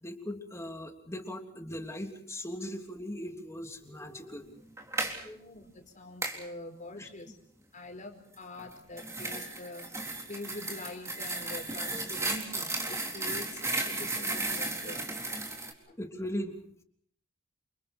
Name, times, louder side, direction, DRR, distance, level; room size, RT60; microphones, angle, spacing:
voice 1, 0.0-4.7 5.1-5.4 6.9-7.1 16.0-16.6, left 1 dB, 15° left, 4 dB, 3.3 m, -39 dB
sound 1, 4.8-5.2 6.2-6.4 8.6-15.7, right 2 dB, 15° right, 4.0 m, -34 dB
voice 2, 5.3-7.4 7.7-15.1 15.9-16.0, left 2 dB, 40° left, 4 dB, 4.9 m, -45 dB
29.5 x 28.5 x 4.5 m, 0.62 s
head